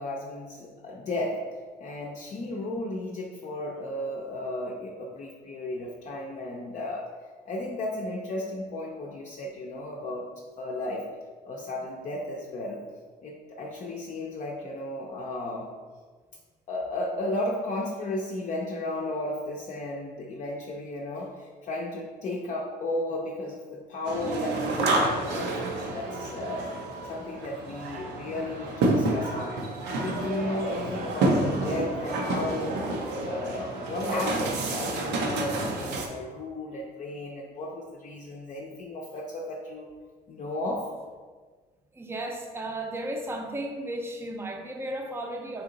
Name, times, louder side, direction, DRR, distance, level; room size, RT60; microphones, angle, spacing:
voice 1, 0.0-1.4 1.8-7.1 7.5-11.1 11.4-12.8 13.2-15.7 16.7-26.7 27.0-29.6 29.9-32.8 33.2-39.9 40.3-40.9, left 1 dB, 45° left, -2 dB, 0.6 m, -34 dB
sound 1, 24.0-36.1, right 2 dB, 90° right, 0.7 m, -29 dB
voice 2, 41.9-45.6, right 1 dB, 15° right, 2 dB, 0.5 m, -34 dB
4.2 x 2.8 x 3.8 m, 1.5 s
cardioid pair, 110°, 17 cm